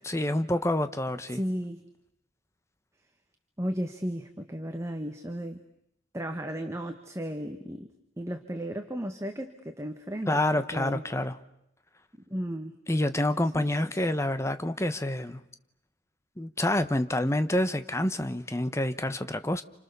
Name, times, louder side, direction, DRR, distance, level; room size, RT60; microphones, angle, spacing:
voice 1, 0.0-1.4 10.3-11.4 12.9-15.4 16.4-19.6, left 1 dB, 15° left, 10 dB, 1.1 m, -27 dB
voice 2, 1.3-1.8 3.6-5.6 6.1-7.9 8.2-11.0 12.3-12.8 13.6-14.0, equal, 15° right, 5 dB, 1.6 m, -34 dB
29.5 x 29.0 x 6.9 m, 0.78 s
head